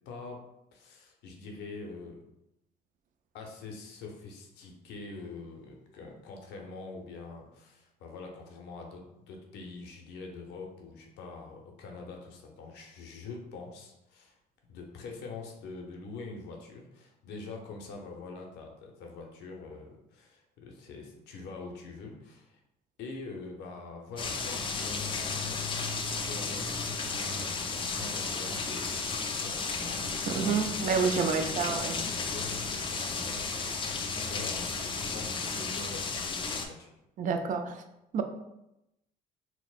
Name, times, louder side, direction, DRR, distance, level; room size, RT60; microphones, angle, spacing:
voice 1, 0.1-0.4 0.7-2.2 3.3-14.3 14.7-22.6 23.0-31.9 32.3-36.9, left 3 dB, 85° left, 1 dB, 0.7 m, -45 dB
sound 1, 24.2-36.7, left 4 dB, 30° left, 0.4 m, -33 dB
voice 2, 30.3-32.0 37.2-37.8 38.1-38.2, right 5 dB, 50° right, 7 dB, 0.4 m, -28 dB
4.1 x 2.1 x 2.4 m, 0.87 s
cardioid pair, 110°, 17 cm